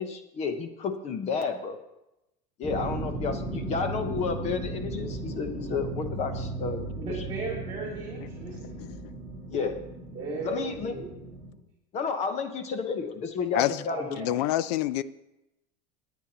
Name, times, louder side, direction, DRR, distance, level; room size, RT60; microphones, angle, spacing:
voice 1, 0.0-1.8 2.6-6.8 7.1-7.2 9.5-9.8 10.4-10.9 11.9-14.2, left 5 dB, 30° left, 8 dB, 1.0 m, -31 dB
sound 1, 2.6-11.5, right 2 dB, ahead, 2.7 m, -36 dB
voice 2, 7.0-8.7 10.1-11.1 13.9-14.3, right 4 dB, 20° right, -2 dB, 2.8 m, -36 dB
voice 3, 8.5-9.0 13.5-13.8 14.2-15.0, left 14 dB, 70° left, 17 dB, 0.6 m, -28 dB
19.5 x 9.3 x 2.9 m, 0.91 s
supercardioid pair, 150°, 21 cm